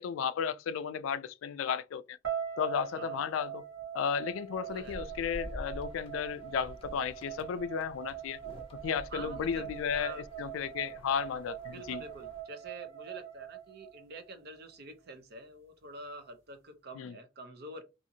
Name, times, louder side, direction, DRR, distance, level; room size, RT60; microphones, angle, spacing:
voice 1, 0.0-2.2 2.6-3.6 3.9-8.4 8.8-10.1 10.4-12.0 17.0-17.1, left 7 dB, 80° left, 0.3 m, -34 dB
sound 1, 2.2-14.4, right 10 dB, 75° right, 1.4 m, -42 dB
voice 2, 4.6-5.0 9.1-10.2 11.7-17.8, right 2 dB, 55° right, 0.6 m, -47 dB
sound 2, 4.7-12.4, equal, 30° left, 0.5 m, -48 dB
2.7 x 2.4 x 2.6 m
head